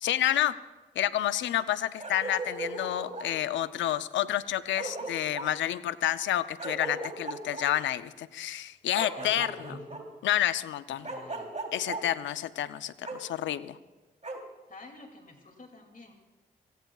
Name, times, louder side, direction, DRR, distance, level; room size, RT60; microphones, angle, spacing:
voice 1, 0.0-0.6 1.0-9.7 10.2-11.1 11.7-13.8, left 12 dB, 85° left, 14 dB, 0.6 m, -29 dB
Bark, 2.0-3.3 4.4-4.5 4.8-5.5 6.6-7.7 9.0-10.0 11.0-12.0 13.0-13.2 14.2-14.4, right 3 dB, 40° right, 3.3 m, -37 dB
voice 2, 9.1-10.1 11.1-11.5 14.7-16.1, left 2 dB, 45° left, 3 dB, 2.5 m, -48 dB
27.0 x 17.5 x 2.4 m, 1.2 s
supercardioid pair, 40°, 19 cm